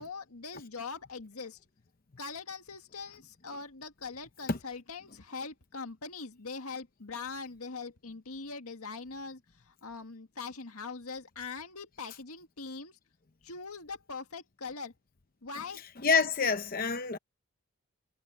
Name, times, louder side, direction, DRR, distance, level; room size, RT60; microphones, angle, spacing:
voice 1, 0.0-1.6 2.2-13.0 13.4-14.9 15.4-15.8, left 4 dB, 90° left, 1.9 m, -42 dB
voice 2, 16.0-17.2, left 5 dB, 40° left, 0.7 m, -27 dB
head